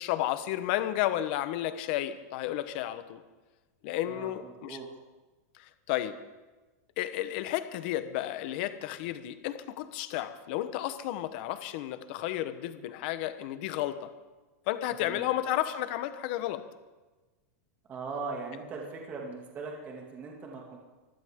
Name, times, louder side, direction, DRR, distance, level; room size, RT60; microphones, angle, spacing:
voice 1, 0.0-3.2 3.8-4.8 5.5-6.2 7.0-14.1 14.7-16.6, left 13 dB, 40° left, 11 dB, 1.0 m, -32 dB
voice 2, 4.0-4.9 15.0-15.3 17.9-20.8, right 4 dB, 20° right, -1 dB, 2.3 m, -40 dB
24.5 x 15.5 x 3.7 m, 1.2 s
supercardioid pair, 175°, 9 cm